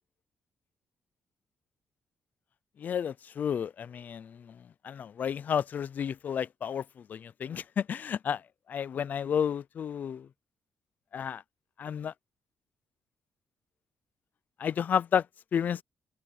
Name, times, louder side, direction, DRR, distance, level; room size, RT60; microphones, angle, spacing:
voice 1, 2.8-4.6 4.8-6.8 7.1-8.4 8.7-10.3 11.1-11.4 11.8-12.1 14.6-15.2 15.5-15.8, left 8 dB, 45° left, 0.5 m, -31 dB
open air
cardioid pair, 155°, 4 cm